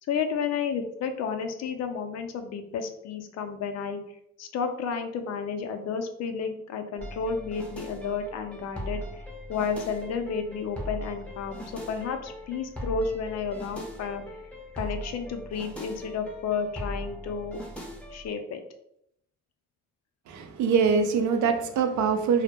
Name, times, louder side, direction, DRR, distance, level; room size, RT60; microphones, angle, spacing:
voice 1, 0.1-4.0 4.4-9.0 9.5-14.2 14.7-17.6 18.1-18.6, left 5 dB, 60° left, 6 dB, 0.4 m, -31 dB
sound 1, 7.0-18.3, equal, 5° left, 0.5 m, -40 dB
voice 2, 20.3-22.4, right 6 dB, 75° right, 7 dB, 0.5 m, -24 dB
2.1 x 2.1 x 2.8 m, 0.76 s
cardioid pair, 90°, 30 cm